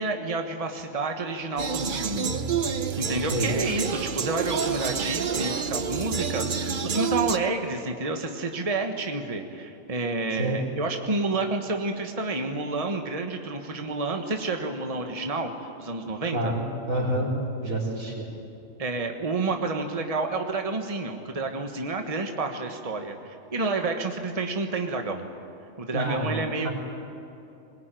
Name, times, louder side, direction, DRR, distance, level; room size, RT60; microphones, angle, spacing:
voice 1, 0.0-2.3 3.0-16.5 18.8-25.3 25.8-26.7, right 3 dB, 25° right, 4 dB, 1.5 m, -29 dB
sound 1, 1.6-7.4, right 6 dB, 45° right, 1.0 m, -28 dB
voice 2, 3.2-3.5 10.3-10.6 16.3-17.3 17.6-18.3 25.9-26.7, right 1 dB, 85° right, -2 dB, 4.7 m, -28 dB
21.5 x 20.5 x 9.3 m, 2.8 s
omnidirectional pair, 1.4 m